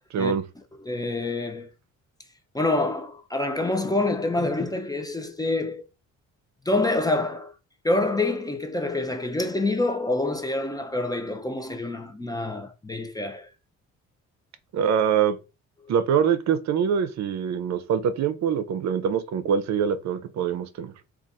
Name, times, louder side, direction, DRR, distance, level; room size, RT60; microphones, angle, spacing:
voice 1, 0.1-0.4 14.7-15.4 15.9-20.9, right 7 dB, 65° right, 0.5 m, -24 dB
voice 2, 0.8-1.7 2.5-5.9 6.7-7.5 7.8-13.5, left 2 dB, 15° left, 0.5 m, -26 dB
2.5 x 2.4 x 4.0 m
cardioid pair, 90°, 30 cm